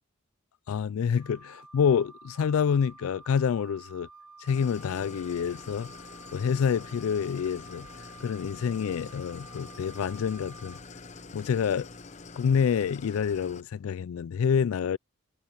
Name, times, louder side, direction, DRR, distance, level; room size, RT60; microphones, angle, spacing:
voice 1, 0.7-4.1 4.4-5.9 6.3-10.8 11.3-11.9 12.4-15.0, left 7 dB, 70° left, 0.3 m, -27 dB
Wind instrument woodwind instrument, 1.2-10.8, right 4 dB, 70° right, 2.7 m, -51 dB
Idling, 4.5-13.6, left 4 dB, 30° left, 0.8 m, -46 dB
head